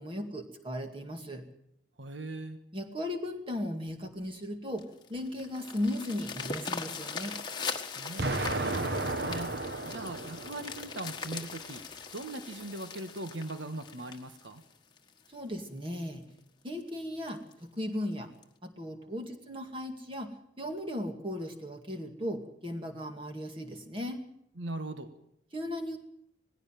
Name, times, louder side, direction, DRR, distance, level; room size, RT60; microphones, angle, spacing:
voice 1, 0.0-1.4 2.7-7.4 15.3-16.3 16.6-18.3 18.6-24.2 25.5-26.0, left 1 dB, 25° right, 5 dB, 2.3 m, -37 dB
voice 2, 2.0-2.6 7.9-14.6 24.6-25.1, right 2 dB, 75° right, 9 dB, 1.5 m, -40 dB
sound 1, 4.8-15.3 15.8-15.9 16.4-16.5 16.8-16.9 17.3-17.5 18.4-18.5, left 5 dB, 25° left, 1.5 m, -41 dB
Explosion, 8.2-11.2, right 2 dB, 55° right, 1.3 m, -33 dB
19.0 x 16.0 x 9.2 m, 0.74 s
head